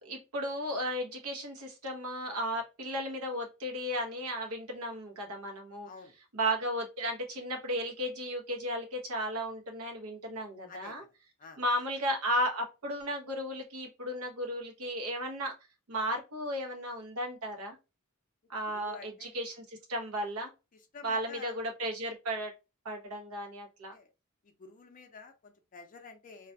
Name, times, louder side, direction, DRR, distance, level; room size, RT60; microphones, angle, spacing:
voice 1, 0.0-5.9 6.3-11.0 11.6-15.5 15.9-17.8 18.5-20.5 21.0-22.5 22.8-23.9, equal, 75° right, 0.8 m, -34 dB
voice 2, 18.7-19.4 20.7-21.6 23.9-24.1 24.4-26.5, left 4 dB, 40° left, 0.5 m, -50 dB
2.4 x 2.1 x 2.5 m
head